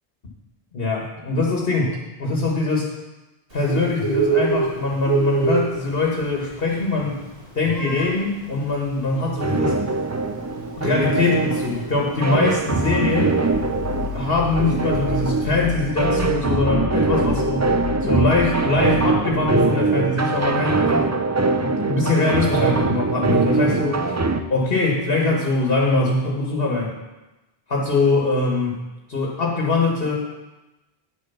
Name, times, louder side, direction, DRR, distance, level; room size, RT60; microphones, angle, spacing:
voice 1, 0.7-2.9 3.5-7.2 7.6-9.8 10.8-13.3 14.0-21.1 21.6-24.1 24.5-26.9 27.7-28.8 29.1-30.1, left 3 dB, 65° left, -1 dB, 1.9 m, -22 dB
Bird, 3.5-15.6, right 4 dB, 65° right, 2.8 m, -28 dB
sound 1, 9.4-24.4, right 3 dB, 25° right, 0.4 m, -22 dB
sound 2, 13.5-20.7, left 6 dB, 40° left, 1.6 m, -32 dB
10.0 x 7.1 x 5.7 m, 1.0 s
omnidirectional pair, 1.0 m